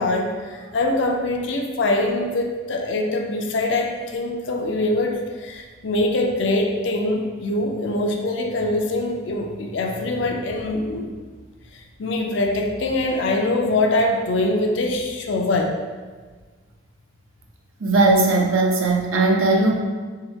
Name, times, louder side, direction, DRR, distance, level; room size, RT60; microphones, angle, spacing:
voice 1, 0.0-11.1 12.0-15.7, left 2 dB, 65° left, 2 dB, 0.5 m, -23 dB
voice 2, 17.8-19.7, right 2 dB, 85° right, 0 dB, 0.6 m, -18 dB
2.9 x 2.7 x 4.3 m, 1.4 s
head